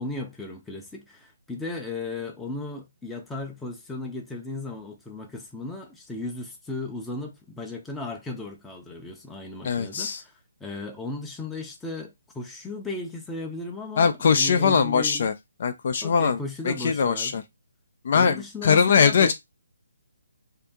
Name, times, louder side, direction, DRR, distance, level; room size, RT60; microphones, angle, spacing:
voice 1, 0.0-10.3 10.6-15.3 16.0-17.5 18.1-19.3, left 2 dB, 5° left, 0.6 m, -36 dB
voice 2, 9.6-10.2 14.0-15.3 15.6-16.4 16.6-17.4 18.0-19.3, left 6 dB, 50° left, 0.5 m, -21 dB
2.7 x 2.6 x 3.5 m
hypercardioid pair, 155°, 0 cm